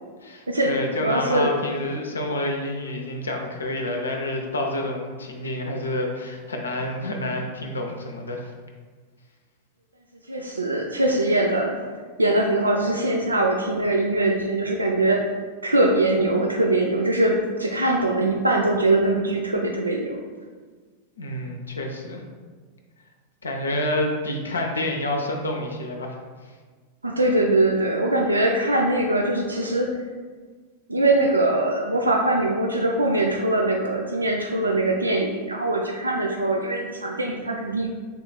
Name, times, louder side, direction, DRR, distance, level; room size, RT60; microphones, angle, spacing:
voice 1, 0.2-8.5 21.2-22.2 23.4-26.2, left 1 dB, 80° left, 2 dB, 0.6 m, -28 dB
voice 2, 1.0-1.6 10.3-11.7 12.2-15.2 15.6-20.2 27.0-29.9 30.9-37.9, right 2 dB, 85° right, 1 dB, 0.3 m, -22 dB
6.6 x 2.4 x 2.2 m, 1.5 s
figure-of-eight pair, 90°, 0 cm